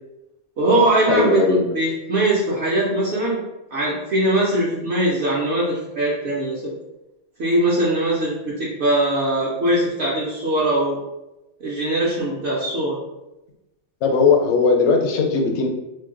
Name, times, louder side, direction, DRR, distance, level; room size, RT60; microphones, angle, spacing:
voice 1, 0.6-3.4 3.7-6.7 7.4-11.0 11.6-13.0, right 1 dB, 65° right, -6 dB, 0.9 m, -21 dB
voice 2, 1.1-1.7 14.0-15.7, left 4 dB, 70° left, 2 dB, 0.8 m, -18 dB
2.6 x 2.1 x 3.7 m, 0.96 s
omnidirectional pair, 1.2 m